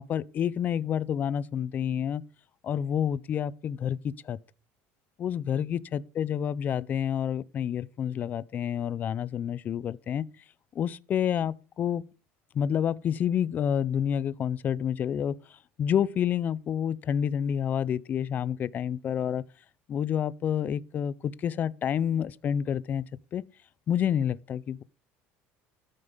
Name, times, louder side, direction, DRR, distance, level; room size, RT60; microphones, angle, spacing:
voice 1, 0.0-2.2 2.6-4.4 5.2-10.3 10.7-12.1 12.5-15.4 15.8-19.4 19.9-23.0 23.3-23.4 23.9-24.8, left 9 dB, 35° left, 0.5 m, -29 dB
13.5 x 5.3 x 5.5 m
cardioid pair, 145°, 5 cm